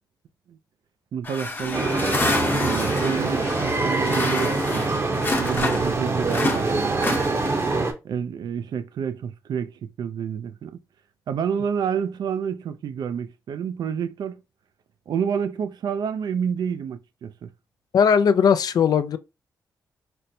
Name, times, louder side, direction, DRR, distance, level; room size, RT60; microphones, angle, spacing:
voice 1, 1.1-1.9 2.6-4.9 5.4-7.2 8.0-10.8 11.3-14.4 15.1-17.5, right 7 dB, 70° right, 0.4 m, -29 dB
sound 1, 1.2-6.0 6.3-7.8, left 2 dB, 30° left, 0.7 m, -28 dB
sound 2, 1.7-7.9, right 3 dB, 35° right, 0.7 m, -24 dB
voice 2, 17.9-19.2, left 7 dB, 60° left, 0.3 m, -18 dB
4.2 x 2.1 x 2.6 m
cardioid pair, 70°, 7 cm